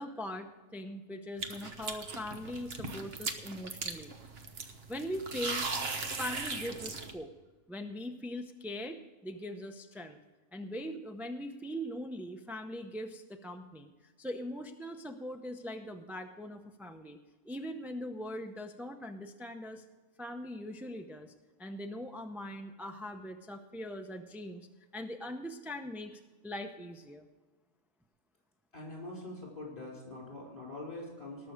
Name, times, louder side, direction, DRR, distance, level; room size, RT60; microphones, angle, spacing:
voice 1, 0.0-4.5 4.9-5.7 6.2-7.3 7.7-10.2 10.5-17.2 17.4-19.8 20.2-21.3 21.6-24.7 24.9-27.3, left 1 dB, ahead, 5 dB, 0.4 m, -41 dB
sound 1, 1.4-7.1, right 4 dB, 50° right, 1.3 m, -38 dB
voice 2, 28.7-31.5, left 2 dB, 30° left, -3 dB, 5.2 m, -44 dB
19.0 x 6.8 x 5.1 m, 1.3 s
omnidirectional pair, 1.3 m